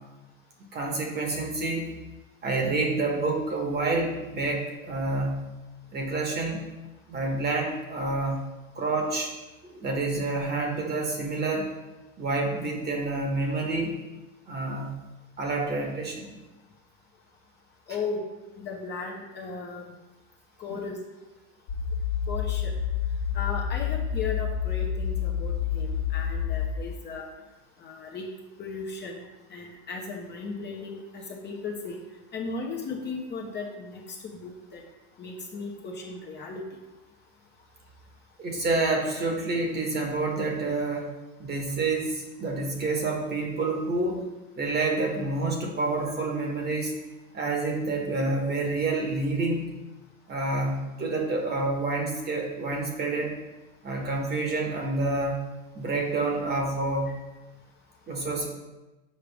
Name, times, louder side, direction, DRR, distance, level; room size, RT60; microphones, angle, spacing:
voice 1, 0.7-1.9 2.4-5.5 5.9-6.6 7.1-8.4 8.7-9.3 9.7-11.7 12.2-14.0 14.5-14.9 15.4-16.3 20.7-20.8 38.4-41.1 41.4-44.3 44.6-46.9 47.3-49.7 50.3-53.4 53.8-55.4 55.7-57.2 58.1-58.5, right 2 dB, 25° right, 1 dB, 1.2 m, -28 dB
voice 2, 17.9-18.2 18.6-19.8 20.6-21.0 22.3-22.7 23.3-27.3 27.8-28.3 28.6-29.2 29.5-32.0 32.3-34.8 35.2-36.6, left 4 dB, 25° left, -1 dB, 0.9 m, -36 dB
sound 1, 21.7-26.7, left 8 dB, 70° left, 1.3 m, -28 dB
6.5 x 4.8 x 3.4 m, 1.1 s
supercardioid pair, 125°, 42 cm